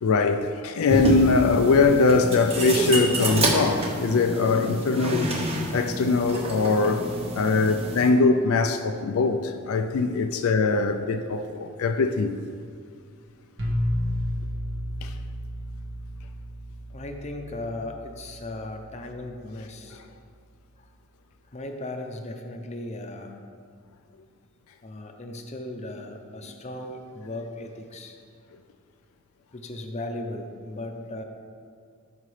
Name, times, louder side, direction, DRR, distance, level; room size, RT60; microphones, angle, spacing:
voice 1, 0.0-5.4 5.7-7.1 7.3-12.3 15.0-15.1, left 4 dB, 75° left, 0.4 m, -22 dB
sound 1, 0.9-8.1, right 1 dB, 30° right, 1.0 m, -28 dB
sound 2, 13.6-19.4, left 1 dB, 60° right, 1.3 m, -32 dB
voice 2, 16.9-20.0 20.8-20.9 21.5-23.4 24.8-28.2 29.5-31.2, left 1 dB, 30° left, 0.6 m, -37 dB
13.0 x 5.1 x 3.3 m
head